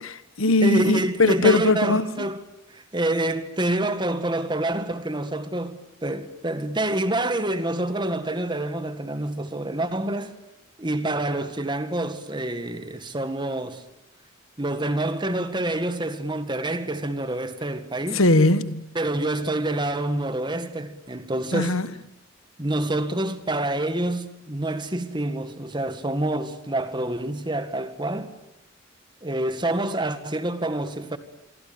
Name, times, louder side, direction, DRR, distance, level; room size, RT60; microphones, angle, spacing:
voice 1, 0.0-2.3 18.1-18.9 21.5-21.9, left 2 dB, 80° left, 1.5 m, -20 dB
voice 2, 0.6-2.4 2.7-10.4 10.8-13.8 14.6-18.2 19.0-21.8 22.6-28.3 29.2-31.2, right 1 dB, 20° right, 1.9 m, -27 dB
27.0 x 24.5 x 8.7 m
head